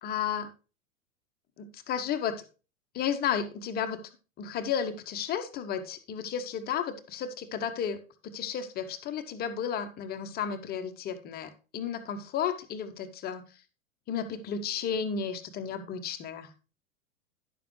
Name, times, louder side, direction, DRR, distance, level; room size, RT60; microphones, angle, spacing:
voice 1, 0.0-0.5 1.6-2.4 2.9-4.0 4.4-8.0 8.2-13.4 14.1-16.5, left 8 dB, 20° left, 8 dB, 0.9 m, -33 dB
10.5 x 6.9 x 3.1 m, 0.33 s
figure-of-eight pair, 95°, 42 cm